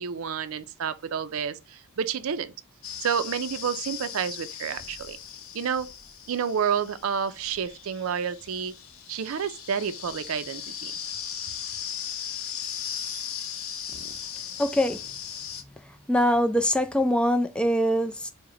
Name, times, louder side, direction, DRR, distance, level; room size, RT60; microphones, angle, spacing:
voice 1, 0.0-2.5 3.0-5.2 5.5-5.9 6.3-8.7 9.1-10.9, right 7 dB, 70° right, 0.4 m, -29 dB
sound 1, 2.8-15.6, left 8 dB, 70° left, 0.6 m, -38 dB
voice 2, 14.6-15.0 16.1-18.3, equal, 5° left, 0.4 m, -23 dB
4.8 x 2.1 x 3.7 m
head